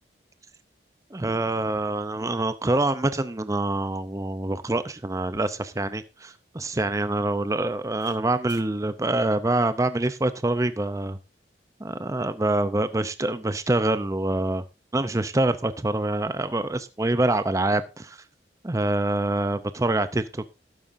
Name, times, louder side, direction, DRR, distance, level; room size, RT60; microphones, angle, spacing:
voice 1, 1.1-11.2 11.8-14.6 14.9-18.2 18.6-20.6, right 2 dB, 20° right, 12 dB, 0.5 m, -25 dB
sound 1, 5.3-7.7 8.0-8.2 8.5-8.7, left 3 dB, 65° left, 6.5 m, -56 dB
12.5 x 11.0 x 2.6 m, 0.27 s
head